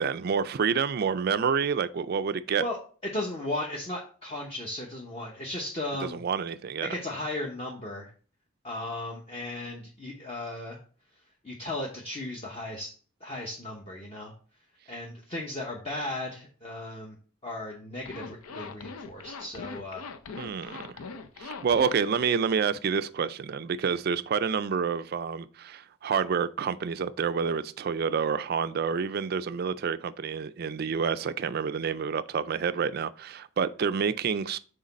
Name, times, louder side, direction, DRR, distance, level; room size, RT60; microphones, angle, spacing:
voice 1, 0.0-2.6 6.0-6.9 20.4-20.9 21.4-34.6, right 6 dB, 45° right, 0.3 m, -28 dB
voice 2, 3.0-6.2 6.8-8.1 8.6-10.8 11.4-12.9 13.2-14.3 14.9-17.2 17.4-20.0 20.5-20.8, left 1 dB, 25° left, 0.8 m, -36 dB
Zipper (clothing), 18.0-22.2, left 4 dB, 90° left, 0.6 m, -41 dB
6.4 x 3.9 x 4.1 m
head